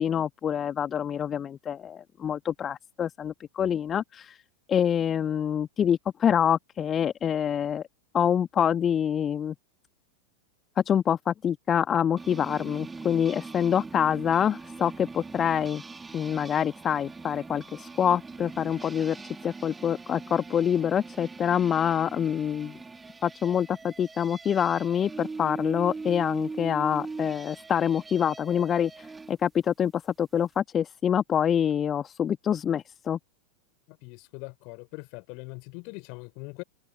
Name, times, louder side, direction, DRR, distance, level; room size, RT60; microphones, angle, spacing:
voice 1, 0.0-4.4 4.7-7.8 8.1-9.5 10.8-15.8 16.1-19.2 19.4-22.8 23.2-33.2, left 8 dB, 25° left, 1.5 m, -26 dB
sound 1, 12.2-29.3, right 4 dB, 10° right, 2.5 m, -41 dB
voice 2, 33.9-36.6, left 35 dB, 45° left, 4.9 m, -42 dB
figure-of-eight pair, 90°, 0 cm